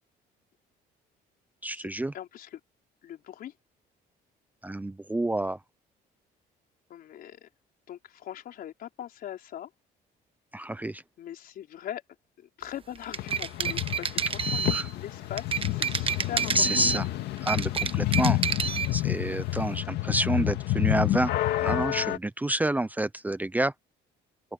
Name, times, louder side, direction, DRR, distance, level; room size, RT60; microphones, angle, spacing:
voice 1, 1.6-2.1 4.6-5.6 10.5-11.0 14.7-14.9 16.5-17.0 17.4-18.4 18.9-21.3 21.6-23.7, right 1 dB, 10° right, 0.8 m, -28 dB
voice 2, 2.1-2.6 3.0-3.5 6.9-7.5 7.9-9.7 11.2-12.0 12.4-16.9, left 11 dB, 60° left, 4.8 m, -41 dB
sound 1, 13.0-14.9 15.4-17.1 17.4-18.9, right 7 dB, 35° right, 1.3 m, -29 dB
sound 2, 13.2-22.2, left 16 dB, 80° left, 2.0 m, -29 dB
open air
cardioid pair, 110°, 17 cm